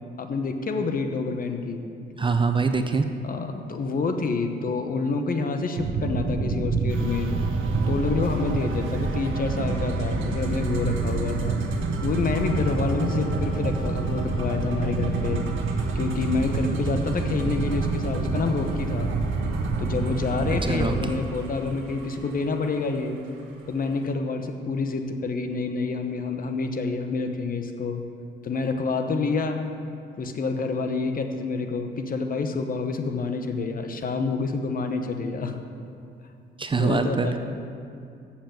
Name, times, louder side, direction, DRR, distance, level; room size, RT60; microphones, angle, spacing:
voice 1, 0.2-1.8 3.2-7.3 7.9-11.6 12.0-15.4 15.9-19.1 19.8-23.2 23.7-28.0 28.4-29.6 30.2-35.6 36.7-37.4, left 4 dB, 45° left, 6 dB, 1.0 m, -28 dB
voice 2, 2.2-3.1 20.6-21.1 21.5-21.6 36.6-37.3, right 4 dB, 25° right, 7 dB, 0.6 m, -24 dB
sound 1, 5.7-21.1, right 3 dB, 55° right, 1.0 m, -27 dB
sound 2, 6.9-24.1, right 4 dB, 80° right, 1.3 m, -40 dB
7.3 x 7.2 x 7.7 m, 2.4 s
cardioid pair, 90°, 20 cm